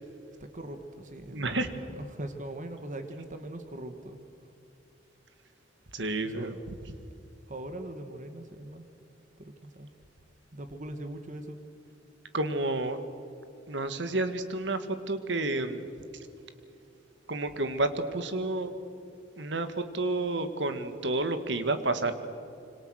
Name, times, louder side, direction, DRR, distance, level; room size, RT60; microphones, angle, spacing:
voice 1, 0.4-4.2 6.2-6.6 7.5-8.8 9.4-9.9 10.5-11.6, right 1 dB, 45° right, 7 dB, 1.7 m, -41 dB
voice 2, 1.3-1.7 5.9-6.6 12.3-13.0 13.7-15.9 17.3-18.7 19.4-22.1, right 2 dB, 70° right, 9 dB, 2.0 m, -30 dB
26.0 x 26.0 x 6.5 m, 2.7 s
head